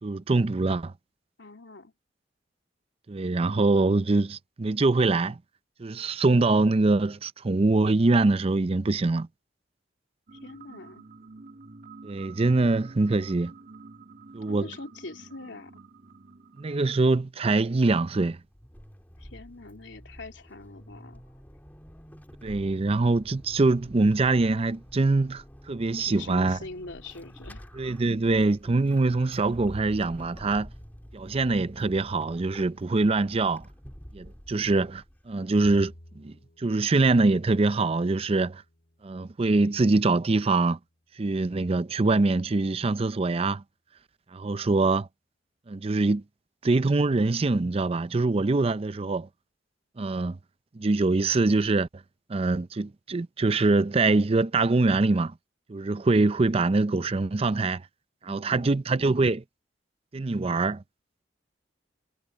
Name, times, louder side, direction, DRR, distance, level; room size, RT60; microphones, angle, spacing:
voice 1, 0.0-0.9 3.1-5.4 5.8-9.3 12.0-13.5 14.3-14.7 16.6-18.4 22.4-26.6 27.8-30.7 31.1-33.7 34.1-38.6 39.0-40.8 41.2-43.6 44.3-45.1 45.7-46.2 46.6-49.3 50.0-50.4 50.7-51.9 52.3-55.3 55.7-57.8 58.2-59.4 60.1-60.8, right 3 dB, 35° right, 0.5 m, -24 dB
voice 2, 1.4-1.9 10.3-11.1 14.5-15.8 19.2-21.2 26.0-27.7 58.2-58.7, left 3 dB, 85° left, 3.3 m, -43 dB
sound 1, 10.3-17.1, right 4 dB, 50° right, 2.4 m, -49 dB
Vehicle / Accelerating revving vroom / Squeak, 18.2-35.4, equal, 10° left, 1.7 m, -48 dB
Bowed string instrument, 35.6-42.0, equal, 55° left, 2.9 m, -55 dB
head